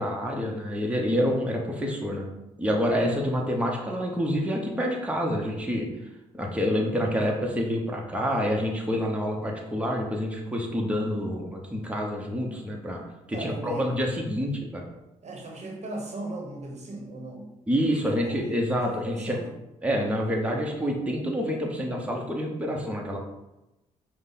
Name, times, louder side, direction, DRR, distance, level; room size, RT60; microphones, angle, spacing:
voice 1, 0.0-2.2 2.6-5.9 6.3-13.0 13.3-14.8 17.7-19.4 19.8-23.2, equal, 10° right, -1 dB, 0.9 m, -27 dB
voice 2, 13.3-14.0 15.2-17.5 17.9-19.6, right 2 dB, 50° right, 1 dB, 1.0 m, -38 dB
5.2 x 2.2 x 4.1 m, 0.95 s
supercardioid pair, 55°, 15 cm